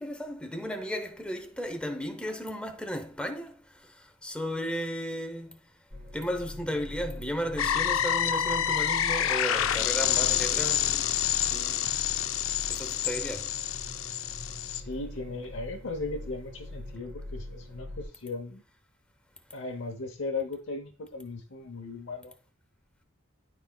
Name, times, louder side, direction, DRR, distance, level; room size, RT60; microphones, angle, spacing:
voice 1, 0.0-3.6 4.2-5.6 6.1-11.0 11.5-11.9 12.7-13.5, equal, 5° left, 0.8 m, -34 dB
sound 1, 5.9-18.0, left 1 dB, 50° right, 1.8 m, -43 dB
sound 2, 7.6-14.8, left 10 dB, 90° left, 0.5 m, -28 dB
voice 2, 14.6-18.6 19.5-22.3, left 3 dB, 70° left, 0.9 m, -37 dB
12.0 x 4.3 x 2.3 m
head